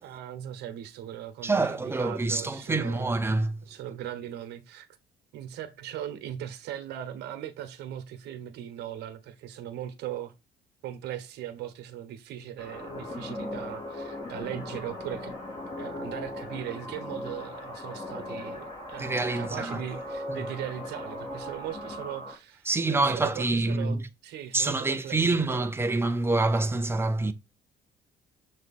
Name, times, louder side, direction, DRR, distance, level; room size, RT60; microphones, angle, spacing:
voice 1, 0.0-3.2 3.6-4.9 5.3-10.3 10.8-15.4 15.8-25.7, right 11 dB, 80° right, 1.2 m, -39 dB
voice 2, 1.4-3.6 19.0-19.8 20.3-20.4 22.7-24.0 24.5-27.3, right 2 dB, 15° right, 0.7 m, -26 dB
sound 1, 12.6-22.3, left 1 dB, 25° left, 2.9 m, -38 dB
7.1 x 3.2 x 4.2 m
cardioid pair, 110°, 17 cm